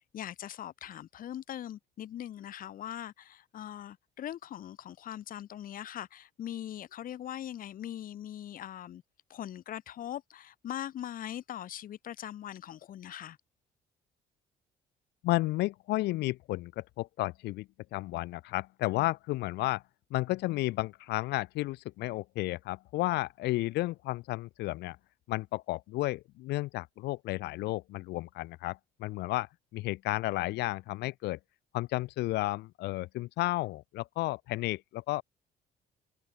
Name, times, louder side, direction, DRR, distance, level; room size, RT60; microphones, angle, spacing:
voice 1, 0.1-9.0 9.3-13.4, left 11 dB, 55° left, 1.5 m, -41 dB
voice 2, 15.2-19.8 20.1-25.0 25.3-31.4 31.7-35.2, left 18 dB, 80° left, 0.9 m, -32 dB
cardioid pair, 110°, 17 cm